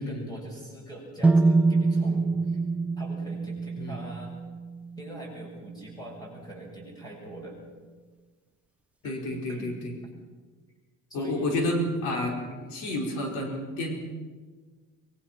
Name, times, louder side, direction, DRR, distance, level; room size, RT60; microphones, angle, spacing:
voice 1, 0.0-2.6 3.0-4.3 5.0-7.6 9.0-9.8 11.1-11.5 12.5-12.6, right 1 dB, 15° left, 0 dB, 6.7 m, -43 dB
sound 1, 1.2-5.2, right 3 dB, 5° right, 0.5 m, -25 dB
voice 2, 9.0-9.9 11.1-12.4 12.7-13.9, left 1 dB, 85° left, 1 dB, 4.9 m, -30 dB
24.0 x 23.0 x 6.0 m, 1.4 s
cardioid pair, 160°, 30 cm